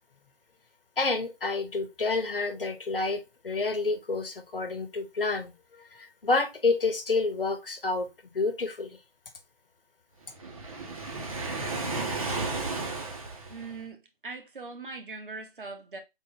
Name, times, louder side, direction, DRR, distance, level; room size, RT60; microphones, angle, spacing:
voice 1, 1.0-5.5 5.9-9.0, left 3 dB, 65° left, 1.0 m, -29 dB
Waves surf, 10.4-13.9, right 3 dB, 35° right, 1.0 m, -33 dB
voice 2, 13.5-16.0, right 3 dB, 60° right, 1.1 m, -41 dB
3.8 x 2.6 x 3.7 m
figure-of-eight pair, 155°, 30 cm